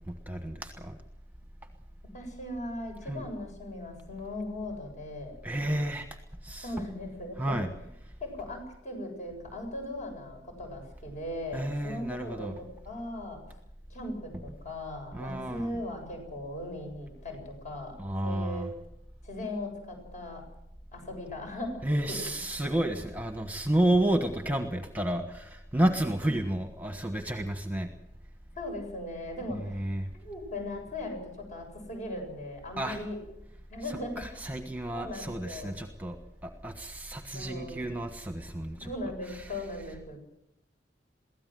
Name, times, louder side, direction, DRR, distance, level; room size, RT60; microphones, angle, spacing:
voice 1, 0.1-1.0 3.1-3.2 5.4-6.1 6.4-6.7 7.4-7.7 11.5-12.5 15.1-15.7 18.0-18.7 21.8-27.9 29.7-30.1 32.8-33.0 34.2-36.2 36.4-38.9, right 1 dB, 10° right, 6 dB, 1.4 m, -31 dB
voice 2, 2.1-5.4 6.6-7.6 8.2-13.4 13.9-18.0 18.2-18.7 19.2-20.4 20.9-21.8 22.1-22.3 26.2-26.3 28.6-29.8 30.1-33.2 33.7-34.4 34.9-35.8 37.3-37.9 38.8-40.2, left 1 dB, 45° left, 3 dB, 7.6 m, -38 dB
23.0 x 16.5 x 7.8 m, 0.81 s
head